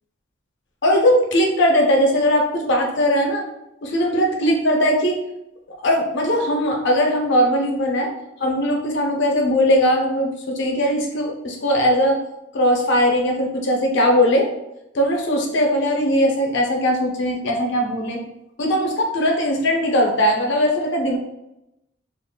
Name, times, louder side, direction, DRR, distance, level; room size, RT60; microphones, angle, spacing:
voice 1, 0.8-3.5 3.8-5.2 5.8-8.1 8.4-12.2 12.5-14.5 14.9-18.2 18.6-21.2, equal, 65° left, 1 dB, 0.6 m, -19 dB
3.6 x 2.4 x 2.2 m, 0.89 s
head